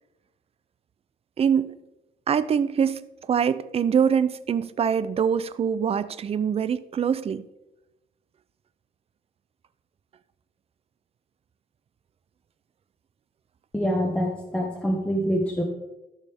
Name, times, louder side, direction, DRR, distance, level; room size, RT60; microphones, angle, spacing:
voice 1, 1.4-1.7 2.3-7.5, right 7 dB, 40° right, 14 dB, 0.5 m, -24 dB
voice 2, 13.7-15.6, equal, 5° left, -1 dB, 1.3 m, -25 dB
14.5 x 6.5 x 3.5 m, 0.98 s
cardioid pair, 140°, 16 cm